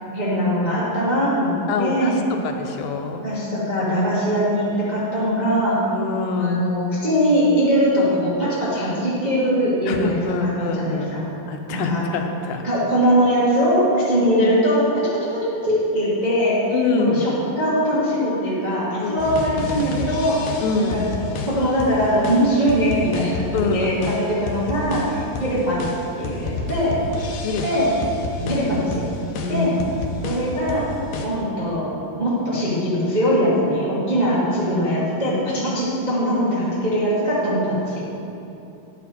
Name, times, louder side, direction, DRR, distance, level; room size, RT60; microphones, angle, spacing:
voice 1, 0.1-2.2 3.2-5.8 6.4-10.1 10.4-11.3 11.7-12.1 12.6-14.8 15.3-17.3 17.6-20.4 20.7-21.0 21.4-27.0 27.6-27.9 28.5-29.1 29.5-29.8 30.2-30.8 31.2-31.9 32.2-38.1, equal, 35° right, -9 dB, 0.6 m, -21 dB
voice 2, 1.7-2.1 2.4-3.3 5.9-6.6 9.9-11.1 11.5-12.6 14.2-14.3 16.7-17.2 19.0-19.3 20.6-21.1 23.5-24.0 27.4-27.6 28.4-28.7 29.4-29.8, left 4 dB, 90° left, 4 dB, 2.5 m, -25 dB
sound 1, 19.2-31.3, left 3 dB, 70° left, 1.8 m, -30 dB
10.5 x 7.3 x 4.2 m, 2.9 s
omnidirectional pair, 3.9 m